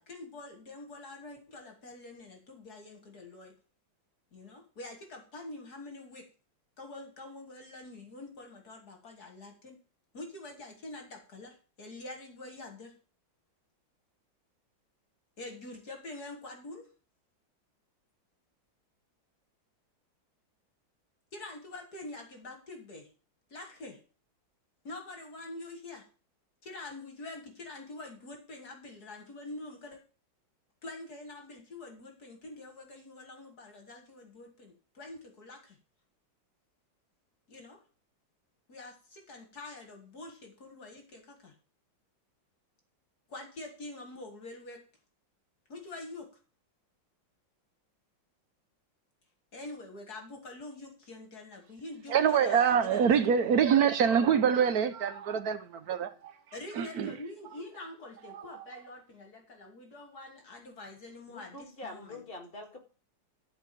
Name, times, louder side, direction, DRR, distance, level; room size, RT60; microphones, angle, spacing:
voice 1, 0.0-3.5 4.3-6.3 6.8-9.8 10.1-13.0 15.4-16.9 21.3-23.1 23.5-24.0 24.8-26.1 26.6-30.0 30.8-35.8 37.5-37.8 38.7-41.5 43.3-44.8 45.7-46.3 49.5-53.2 56.5-62.2, left 2 dB, 55° left, 2.1 m, -45 dB
voice 2, 52.1-56.3 56.8-57.1 58.3-58.6, right 7 dB, 60° right, 1.1 m, -25 dB
voice 3, 61.3-62.8, left 2 dB, 30° left, 2.1 m, -44 dB
12.0 x 4.7 x 7.6 m
omnidirectional pair, 2.1 m